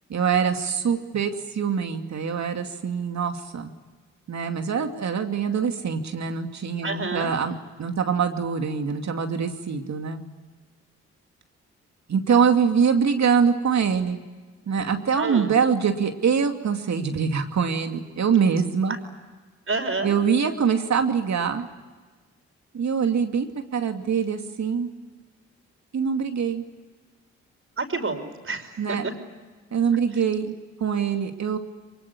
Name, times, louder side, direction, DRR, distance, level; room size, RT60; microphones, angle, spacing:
voice 1, 0.1-3.7 4.3-10.2 12.1-14.2 14.7-18.9 20.0-21.7 22.7-24.9 25.9-26.6 28.8-29.1 29.7-30.5 30.8-31.6, right 6 dB, 60° right, 5 dB, 2.6 m, -24 dB
voice 2, 6.8-7.3 15.2-15.5 19.7-20.1 27.8-29.1, right 3 dB, 45° right, 7 dB, 5.4 m, -29 dB
23.5 x 21.5 x 9.8 m, 1.3 s
hypercardioid pair, 40°, 31 cm